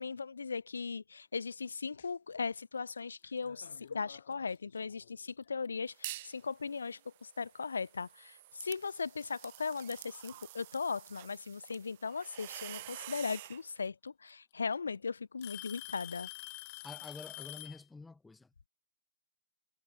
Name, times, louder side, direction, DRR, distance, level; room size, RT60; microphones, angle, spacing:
voice 1, 0.0-16.3, left 5 dB, 85° left, 0.4 m, -38 dB
sound 1, 2.0-2.4 2.9-5.6 6.4-7.3, left 8 dB, 65° left, 5.6 m, -58 dB
Alarm / Tick-tock, 3.9-4.1 5.0-5.1 5.9-6.0 7.7-7.8 9.0-9.1 10.3-10.8 12.5-12.6 13.9-14.0 14.3-14.7 15.4-17.8, left 23 dB, 40° left, 1.0 m, -46 dB
sound 2, 5.9-6.4 6.8-13.6, right 17 dB, 45° right, 0.4 m, -48 dB
voice 2, 16.8-18.5, left 3 dB, 5° left, 1.0 m, -48 dB
hypercardioid pair, 130°, 0 cm